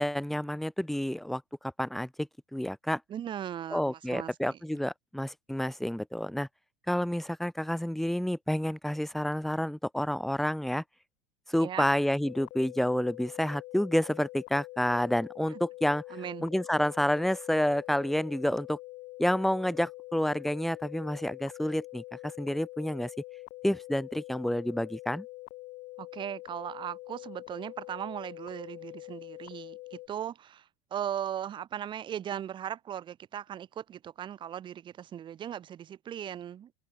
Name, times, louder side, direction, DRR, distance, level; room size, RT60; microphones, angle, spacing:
voice 1, 0.0-1.4 1.8-3.0 3.7-6.5 6.9-10.8 11.5-16.0 16.4-18.8 19.2-23.1 23.6-25.2, equal, ahead, 1.7 m, -29 dB
voice 2, 3.1-4.6 11.6-11.9 15.5-15.6 16.1-16.5 26.0-36.7, right 10 dB, 30° right, 4.7 m, -38 dB
sound 1, 12.2-30.1, left 21 dB, 50° left, 1.9 m, -45 dB
supercardioid pair, 125°, 15 cm